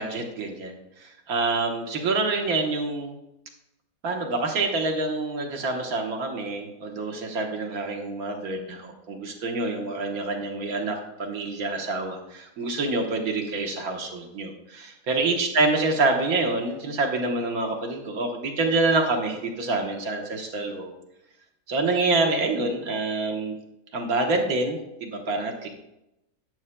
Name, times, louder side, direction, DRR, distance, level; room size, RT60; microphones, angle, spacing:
voice 1, 0.0-3.2 4.0-20.9 21.7-23.5 23.9-25.7, right 3 dB, 90° right, 2 dB, 1.6 m, -27 dB
12.5 x 9.7 x 2.2 m, 0.88 s
omnidirectional pair, 1.5 m